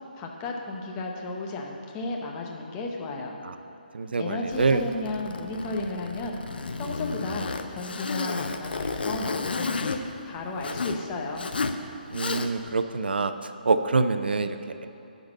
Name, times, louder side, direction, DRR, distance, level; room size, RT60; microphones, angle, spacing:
voice 1, 0.1-3.4 4.2-6.4 6.8-10.0 10.3-11.5, left 2 dB, 25° left, 0 dB, 0.9 m, -33 dB
voice 2, 3.9-4.8 12.1-14.9, right 4 dB, 75° right, 10 dB, 0.5 m, -26 dB
Zipper (clothing), 4.5-11.0 11.3-11.8 12.1-12.7, left 4 dB, 75° left, 0.5 m, -32 dB
9.5 x 4.0 x 7.2 m, 2.7 s
figure-of-eight pair, 145°, 5 cm